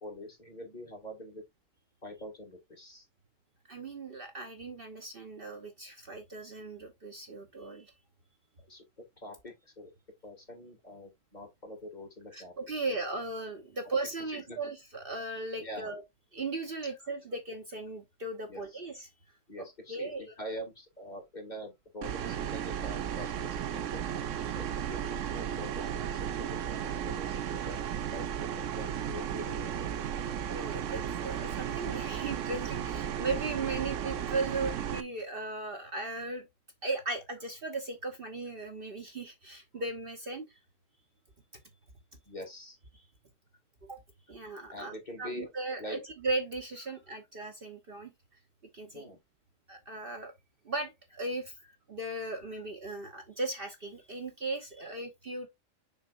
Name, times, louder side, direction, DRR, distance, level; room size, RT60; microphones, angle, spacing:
voice 1, 0.0-1.4 2.0-3.1 8.7-8.8 9.2-9.9 10.2-12.8 13.8-13.9 14.3-14.6 15.6-15.9 16.8-16.9 18.5-18.8 19.5-24.1 24.4-27.4 27.7-29.9 42.2-42.8 44.7-45.5 45.8-46.0 48.9-49.2 51.6-51.7 52.4-52.7 54.8-54.9, left 1 dB, 35° left, 2.5 m, -45 dB
voice 2, 3.7-7.9 12.3-16.0 16.3-19.1 19.6-20.3 30.5-36.5 36.8-40.6 43.8-44.0 44.3-48.1 48.7-49.1 49.7-50.3 50.6-51.6 51.9-55.5, right 3 dB, 45° right, 1.2 m, -37 dB
sound 1, 22.0-35.0, right 9 dB, 70° right, 1.0 m, -35 dB
6.9 x 5.7 x 2.6 m
omnidirectional pair, 1.4 m